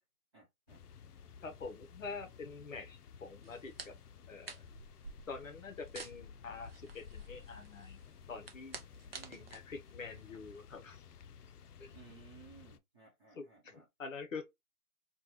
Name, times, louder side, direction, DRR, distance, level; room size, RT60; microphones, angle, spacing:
voice 1, 0.3-0.8 9.1-9.5 11.9-13.8, right 6 dB, 20° right, 0.9 m, -59 dB
sound 1, 0.7-12.8, left 6 dB, 90° left, 0.6 m, -55 dB
voice 2, 1.4-3.9 4.3-4.7 5.3-8.0 8.3-8.8 9.3-11.0 13.3-14.4, left 4 dB, 60° left, 0.8 m, -46 dB
sound 2, 3.4-10.7, right 4 dB, 45° right, 0.4 m, -52 dB
3.4 x 2.3 x 2.9 m
hypercardioid pair, 160°, 45 cm